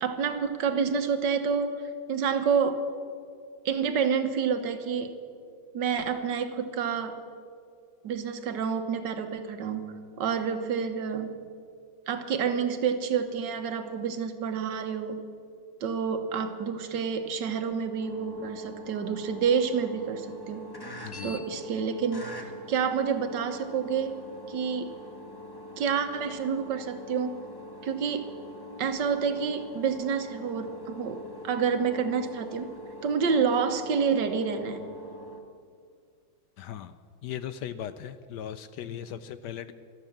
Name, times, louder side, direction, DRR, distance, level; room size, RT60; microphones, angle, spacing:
voice 1, 0.0-1.7 2.1-2.8 3.6-5.1 5.7-7.2 8.0-11.5 12.1-15.3 15.8-20.7 21.2-22.3 22.7-24.2 24.5-24.9 25.8-27.4 27.8-28.3 28.8-32.7 33.0-34.9, right 6 dB, 70° right, 8 dB, 1.6 m, -28 dB
sound 1, 18.0-35.4, left 1 dB, 15° left, 1.0 m, -44 dB
voice 2, 21.0-21.4 36.6-39.7, left 10 dB, 75° left, 13 dB, 1.0 m, -38 dB
13.0 x 12.5 x 7.3 m, 2.3 s
omnidirectional pair, 2.1 m